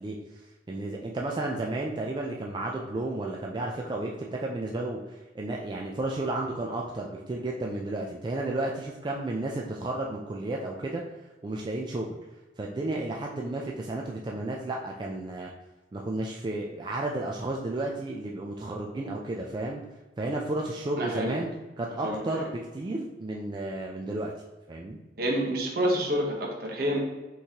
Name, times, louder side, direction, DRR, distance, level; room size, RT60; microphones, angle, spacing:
voice 1, 0.0-11.0 11.4-12.2 12.6-15.5 15.9-19.8 20.2-21.5 21.8-24.3 24.7-25.0, right 2 dB, 25° right, -1 dB, 0.3 m, -32 dB
voice 2, 21.0-21.4 22.0-22.2 25.2-27.0, equal, 60° right, 0 dB, 1.0 m, -28 dB
5.6 x 3.1 x 2.8 m, 1.2 s
head